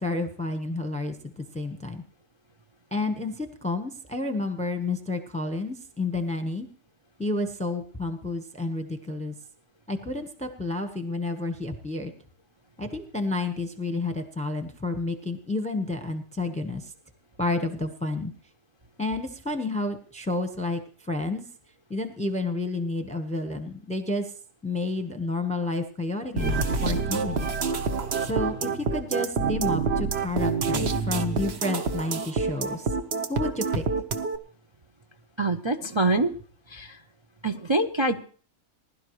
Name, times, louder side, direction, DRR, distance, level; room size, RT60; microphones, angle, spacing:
voice 1, 0.0-2.0 2.9-6.7 7.2-9.3 9.9-12.1 12.8-16.9 17.4-18.3 19.0-21.5 21.9-24.3 24.6-27.5 28.2-32.9 33.3-33.8, left 2 dB, 5° left, 7 dB, 1.0 m, -30 dB
sound 1, 26.4-34.4, right 4 dB, 50° right, 1.1 m, -27 dB
voice 2, 35.4-36.4 36.7-37.0 37.4-38.2, right 2 dB, 30° right, 5 dB, 0.5 m, -25 dB
20.5 x 12.0 x 3.2 m, 0.44 s
omnidirectional pair, 1.6 m